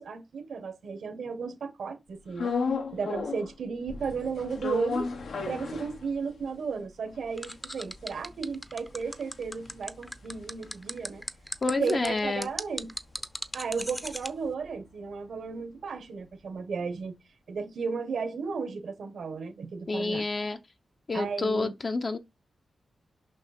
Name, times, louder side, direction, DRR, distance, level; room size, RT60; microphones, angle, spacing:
voice 1, 0.0-2.5 2.9-5.1 5.5-11.2 11.8-13.0 13.5-17.1 17.5-20.2 21.1-21.7, right 5 dB, 75° right, 1.5 m, -34 dB
sound 1, 2.4-3.6 3.9-6.5 6.8-6.9 7.1-11.6 12.0-16.0, left 5 dB, 80° left, 1.6 m, -36 dB
sound 2, 7.4-14.3, equal, ahead, 0.7 m, -37 dB
voice 2, 11.6-12.5 19.9-20.6 21.1-22.2, left 3 dB, 40° left, 0.8 m, -29 dB
6.2 x 5.7 x 4.3 m
wide cardioid pair, 110°, 0 cm